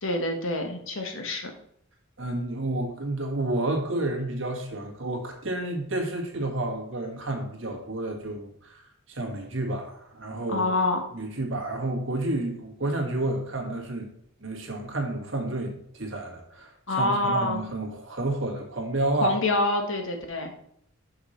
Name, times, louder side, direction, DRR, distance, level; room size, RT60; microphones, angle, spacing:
voice 1, 0.0-1.5 10.5-11.0 16.9-17.6 19.2-20.5, left 2 dB, 65° left, 4 dB, 1.3 m, -26 dB
voice 2, 2.2-10.7 11.1-14.1 14.4-19.3, right 2 dB, 55° right, 2 dB, 1.7 m, -30 dB
6.5 x 5.9 x 4.3 m, 0.70 s
head